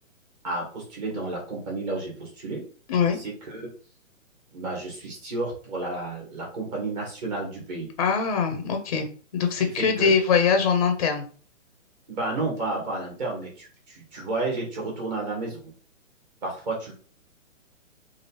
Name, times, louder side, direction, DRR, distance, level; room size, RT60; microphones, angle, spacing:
voice 1, 0.4-2.6 3.2-3.6 4.5-7.9 9.8-10.1 12.1-15.6 16.4-16.9, right 2 dB, 35° right, -2 dB, 1.3 m, -31 dB
voice 2, 8.0-11.3, left 6 dB, 30° left, 5 dB, 0.4 m, -23 dB
3.1 x 2.4 x 2.9 m, 0.41 s
hypercardioid pair, 150°, 39 cm